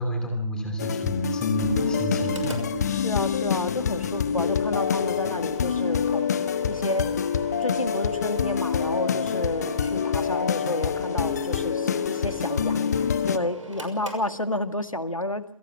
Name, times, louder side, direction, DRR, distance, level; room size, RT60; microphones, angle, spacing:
voice 1, 0.0-3.0, equal, 5° left, 4 dB, 3.1 m, -30 dB
sound 1, 0.8-13.4, left 7 dB, 30° left, 1.0 m, -26 dB
sound 2, 1.6-9.2, right 10 dB, 25° right, 1.9 m, -39 dB
Mechanical fan, 2.1-15.0, right 3 dB, 75° right, 6.2 m, -42 dB
voice 2, 2.9-6.3 6.7-7.1 7.6-15.4, left 1 dB, 85° left, 9 dB, 1.9 m, -30 dB
27.5 x 17.5 x 5.9 m, 0.70 s
figure-of-eight pair, 145°, 17 cm